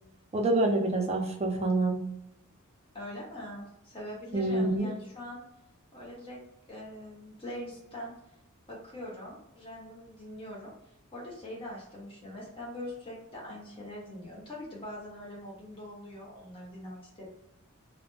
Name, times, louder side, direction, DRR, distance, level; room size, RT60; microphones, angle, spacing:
voice 1, 0.3-2.0 4.3-4.9, right 2 dB, 30° right, 1 dB, 0.5 m, -27 dB
voice 2, 2.9-5.4 5.9-6.4 6.7-8.1 8.7-10.7 11.1-17.3, left 1 dB, 25° left, -4 dB, 0.9 m, -42 dB
2.1 x 2.1 x 3.1 m, 0.84 s
head